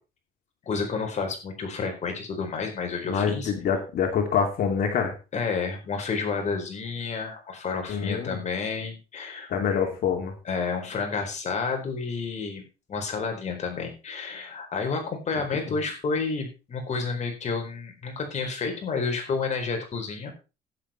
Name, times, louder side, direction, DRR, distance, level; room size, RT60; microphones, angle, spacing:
voice 1, 0.7-3.5 5.3-10.0 10.4-12.6 12.9-20.3, left 4 dB, 45° left, 3 dB, 4.4 m, -30 dB
voice 2, 3.0-5.1 7.9-8.4 9.5-10.3 15.4-15.8, left 6 dB, 60° left, 3 dB, 3.1 m, -26 dB
11.5 x 10.0 x 4.4 m, 0.31 s
cardioid pair, 110°, 17 cm